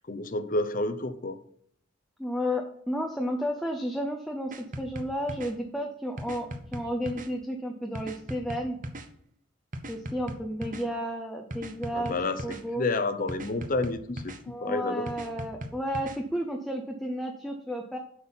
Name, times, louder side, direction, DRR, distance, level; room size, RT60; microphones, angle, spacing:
voice 1, 0.1-1.4 11.9-14.2 14.6-15.1, left 2 dB, 40° left, 11 dB, 0.6 m, -29 dB
voice 2, 2.2-6.5 6.7-8.8 9.9-12.9 14.4-18.0, equal, ahead, 1 dB, 0.6 m, -32 dB
sound 1, 4.5-5.5 6.2-7.3 7.9-9.1 9.7-10.8 11.5-12.6 13.3-14.4 15.1-16.2, right 1 dB, 35° right, 0.8 m, -38 dB
7.7 x 6.1 x 5.6 m, 0.66 s
head